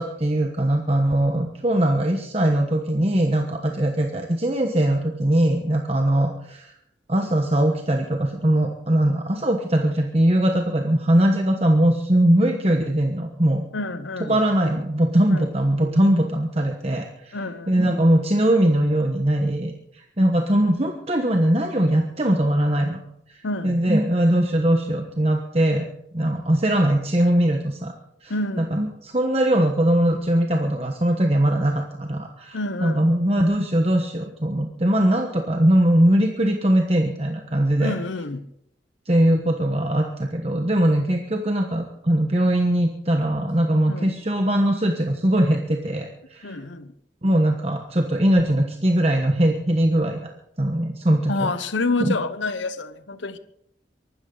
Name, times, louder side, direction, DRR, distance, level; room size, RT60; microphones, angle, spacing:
voice 1, 0.0-6.7 7.1-13.6 14.3-17.4 17.7-23.0 23.3-25.8 26.1-27.9 28.2-38.0 39.1-46.6 47.2-50.2 50.6-51.5 52.0-52.1, right 1 dB, 30° right, 1.2 m, -21 dB
voice 2, 13.7-14.4 15.3-15.5 17.3-17.9 23.4-23.8 28.3-28.7 32.5-33.1 37.8-38.4 43.9-44.1 46.4-46.9 51.3-53.4, left 2 dB, 85° left, 0.9 m, -28 dB
23.5 x 12.5 x 4.0 m
head